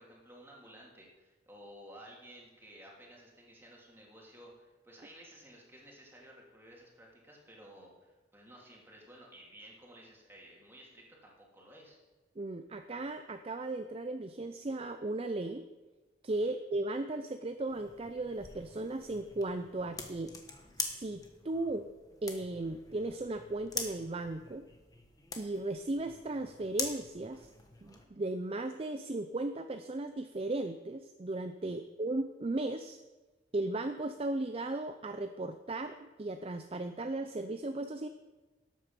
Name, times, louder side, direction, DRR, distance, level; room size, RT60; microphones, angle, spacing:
voice 1, 0.0-12.0 16.4-16.5 31.7-31.8, equal, 15° right, -3 dB, 2.9 m, -54 dB
voice 2, 12.4-15.7 16.2-20.3 20.8-21.9 22.2-24.7 25.4-27.5 27.8-33.0 33.5-38.1, right 2 dB, 35° right, 8 dB, 0.5 m, -36 dB
sound 1, 17.7-28.0, left 4 dB, 20° left, 1.3 m, -44 dB
12.5 x 8.5 x 5.8 m, 1.2 s
head